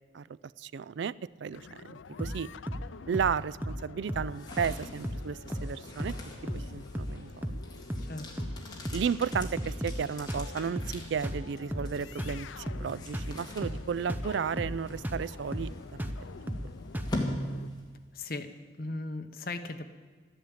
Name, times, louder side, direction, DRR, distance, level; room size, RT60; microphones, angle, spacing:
voice 1, 0.6-1.1 1.4-2.5 3.1-6.2 6.5-7.4 8.9-15.7 16.0-16.1, right 6 dB, 70° right, 20 dB, 0.4 m, -33 dB
sound 1, 1.5-17.7, left 5 dB, 85° left, 0.5 m, -49 dB
sound 2, 2.2-2.4 2.7-2.9 3.1-3.4 3.6-3.8 4.1-4.3 4.6-4.8 5.0-5.3 5.5-5.7 6.0-6.2 6.5-6.7 6.9-7.2 7.4-7.6 7.9-8.1 8.4-8.6 8.8-9.1 9.3-10.0 10.3-10.5 10.8-11.0 11.2-11.4 11.7-11.9 12.2-12.4 12.7-12.9 13.1-13.4 13.6-13.8 14.1-14.3 14.6-14.8 15.0-15.3 15.5-15.7 16.0-16.2 16.5-16.7 16.9-17.2, equal, 10° right, 0.7 m, -35 dB
sound 3, 4.1-18.2, left 1 dB, 20° left, 2.1 m, -42 dB
voice 2, 8.0-8.5 18.1-18.5 18.8-19.8, left 2 dB, 50° left, 7 dB, 1.0 m, -37 dB
13.0 x 10.5 x 8.8 m, 1.5 s
head